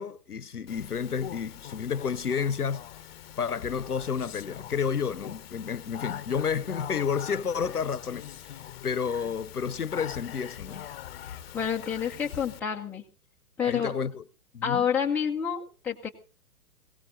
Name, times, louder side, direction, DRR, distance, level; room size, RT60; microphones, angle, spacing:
voice 1, 0.0-2.9 3.4-10.9 13.6-14.2 14.5-14.8, left 6 dB, 85° left, 0.8 m, -31 dB
Speech, 0.7-12.6, left 11 dB, 45° left, 0.9 m, -42 dB
voice 2, 11.5-13.0 13.6-13.9 14.6-16.1, left 8 dB, 5° left, 0.7 m, -28 dB
22.0 x 17.0 x 2.7 m
figure-of-eight pair, 120°, 44 cm